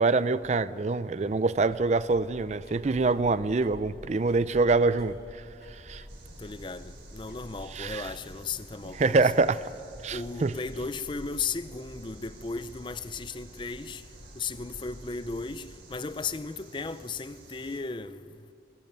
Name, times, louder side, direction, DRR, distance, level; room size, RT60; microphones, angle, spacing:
voice 1, 0.0-5.1 5.9-6.0 7.7-8.1 8.9-9.7 10.0-10.5, right 3 dB, 40° right, 0.4 m, -25 dB
sound 1, 1.2-16.4, equal, 55° left, 4.5 m, -50 dB
sound 2, 6.1-17.8, right 2 dB, 80° right, 3.7 m, -52 dB
voice 2, 6.4-9.2 10.1-14.0 14.4-18.4, left 4 dB, 25° left, 0.5 m, -36 dB
21.0 x 17.5 x 9.2 m
head